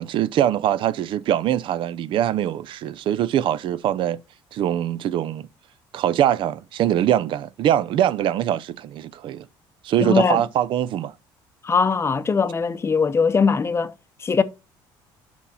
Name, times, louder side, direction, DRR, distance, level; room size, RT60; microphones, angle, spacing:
voice 1, 0.0-4.2 4.5-5.5 5.9-9.4 9.8-11.1, right 11 dB, 60° right, 0.4 m, -22 dB
voice 2, 10.0-10.4 11.6-13.9 14.2-14.4, left 5 dB, 25° left, 0.7 m, -20 dB
6.2 x 5.6 x 4.1 m
supercardioid pair, 95°, 10 cm